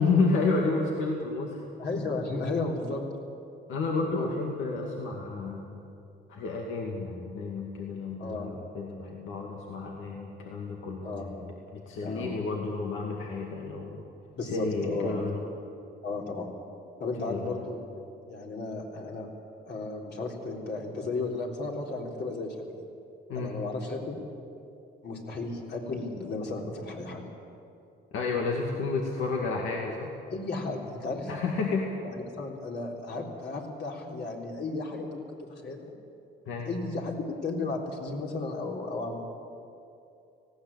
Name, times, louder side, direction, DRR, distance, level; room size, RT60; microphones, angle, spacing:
voice 1, 0.0-1.6 3.7-5.8 6.3-14.1 14.4-15.4 17.2-17.6 23.3-23.5 28.1-30.1 31.3-31.9 36.5-36.7, left 3 dB, 85° left, 0 dB, 2.1 m, -31 dB
voice 2, 1.8-3.0 4.1-4.3 8.2-8.5 11.0-11.3 12.0-12.3 14.4-15.2 16.0-16.5 17.0-17.8 18.3-19.3 19.7-22.8 23.3-24.2 25.0-27.2 30.3-31.3 32.0-35.9 36.6-39.2, left 3 dB, 60° left, -1 dB, 3.9 m, -34 dB
19.0 x 16.5 x 8.8 m, 2.6 s
cardioid pair, 90°, 20 cm